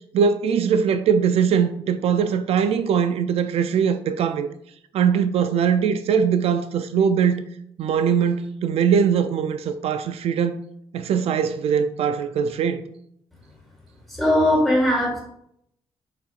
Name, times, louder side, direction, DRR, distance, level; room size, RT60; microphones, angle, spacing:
voice 1, 0.1-4.5 4.9-7.4 7.8-10.6 10.9-12.8, right 7 dB, 80° right, 0.4 m, -21 dB
voice 2, 14.1-15.2, left 1 dB, ahead, 2.6 m, -19 dB
6.8 x 6.3 x 2.5 m
wide cardioid pair, 165°, 10 cm